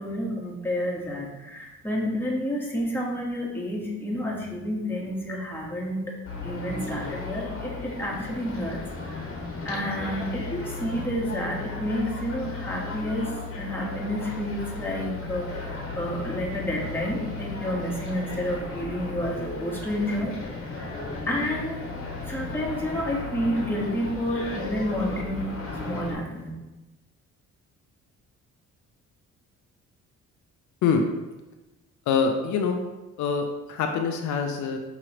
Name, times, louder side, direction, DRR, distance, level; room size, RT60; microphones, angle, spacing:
voice 1, 0.0-6.1 6.4-9.4 9.6-20.9 21.3-21.8 22.3-26.5, equal, 5° left, -3 dB, 1.2 m, -30 dB
sound 1, 6.2-26.1, left 3 dB, 45° left, 1.2 m, -35 dB
voice 2, 32.1-32.8 33.2-34.8, left 5 dB, 70° left, 4 dB, 0.5 m, -25 dB
5.8 x 3.0 x 2.9 m, 1.1 s
cardioid pair, 90°, 30 cm